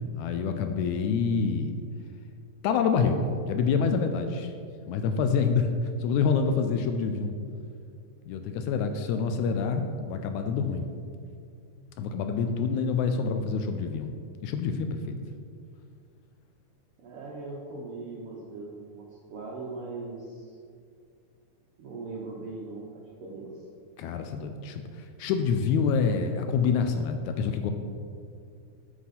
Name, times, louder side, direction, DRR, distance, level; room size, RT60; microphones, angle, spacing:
voice 1, 0.0-1.8 2.6-4.5 4.9-5.7 6.0-7.3 8.3-10.9 12.0-14.1 14.4-15.2 24.0-27.7, left 5 dB, 80° left, 7 dB, 1.8 m, -27 dB
voice 2, 17.0-20.5 21.8-23.5, right 3 dB, 70° right, -3 dB, 1.4 m, -40 dB
9.3 x 5.9 x 4.2 m, 2.3 s
omnidirectional pair, 3.6 m